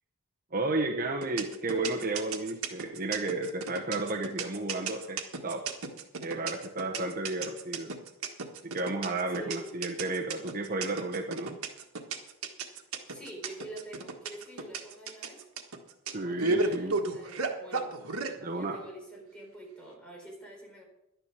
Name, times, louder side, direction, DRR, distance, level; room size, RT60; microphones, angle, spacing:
voice 1, 0.5-5.7 6.2-7.9 8.6-11.6 16.1-16.9 18.4-18.8, right 2 dB, 40° right, 2 dB, 1.1 m, -32 dB
sound 1, 1.2-18.3, right 3 dB, 85° right, 1.5 m, -33 dB
voice 2, 9.4-9.8 13.1-15.4 16.2-17.9 18.2-20.8, right 1 dB, 5° left, -1 dB, 4.0 m, -46 dB
11.5 x 10.5 x 6.0 m, 0.87 s
head